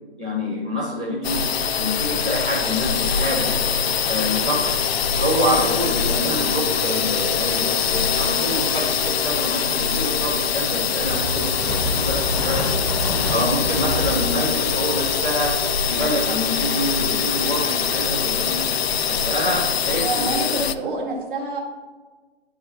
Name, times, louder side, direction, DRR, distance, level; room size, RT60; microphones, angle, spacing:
voice 1, 0.2-1.4 1.8-3.5 4.0-4.9 5.2-12.6 12.9-15.5 15.9-18.6 19.1-20.5, equal, 5° right, -7 dB, 0.4 m, -26 dB
sound 1, 1.2-20.7, left 7 dB, 65° left, 0.5 m, -23 dB
sound 2, 11.1-19.1, left 1 dB, 30° left, 0.9 m, -29 dB
voice 2, 19.9-21.6, right 3 dB, 45° right, -2 dB, 2.0 m, -27 dB
10.5 x 4.7 x 2.9 m, 1.3 s
figure-of-eight pair, 140°, 34 cm